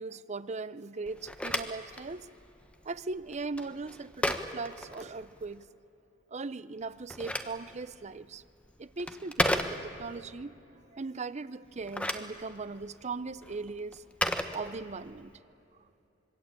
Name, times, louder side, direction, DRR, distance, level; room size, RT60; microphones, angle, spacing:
voice 1, 0.0-2.3 2.8-5.6 6.3-8.4 8.8-10.5 10.9-14.0 14.5-15.4, right 3 dB, 35° right, 0.6 m, -39 dB
Telephone, 1.1-5.6 6.8-10.2 11.7-15.2, left 1 dB, 5° left, 1.1 m, -35 dB
25.5 x 22.5 x 8.7 m
head